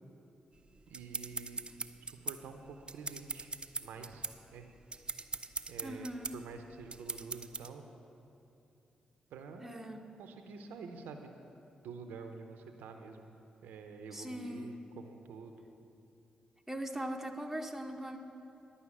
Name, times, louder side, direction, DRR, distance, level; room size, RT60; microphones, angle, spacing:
sound 1, 0.6-7.7, right 3 dB, 35° right, 0.5 m, -41 dB
voice 1, 0.9-1.6 2.0-3.5 3.8-4.7 5.7-7.8 9.3-11.3 11.8-13.4 13.6-15.6, right 5 dB, 80° right, 6 dB, 0.7 m, -48 dB
voice 2, 5.8-6.3 9.6-10.0 14.1-14.8 16.7-18.2, right 1 dB, 5° right, 3 dB, 1.1 m, -40 dB
11.0 x 5.5 x 8.6 m, 2.8 s
supercardioid pair, 45°, 3 cm